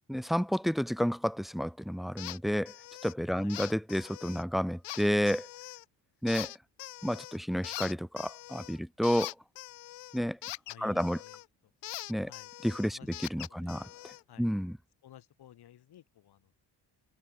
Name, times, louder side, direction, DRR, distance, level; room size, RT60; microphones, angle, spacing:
voice 1, 0.1-2.8 3.0-5.5 6.2-6.5 7.0-9.3 10.1-10.4 10.8-11.2 12.1-12.3 12.6-14.1 14.4-14.8, equal, ahead, 2.0 m, -30 dB
sound 1, 2.2-2.4 2.7-3.1 3.5-4.4 4.8-5.8 6.3-7.4 7.6-11.5 11.8-14.2, left 17 dB, 80° left, 3.5 m, -42 dB
voice 2, 10.7-11.4 12.2-12.5 12.8-13.1 13.5-13.8 14.3-14.5 15.0-16.5, left 11 dB, 65° left, 6.6 m, -54 dB
cardioid pair, 95°, 42 cm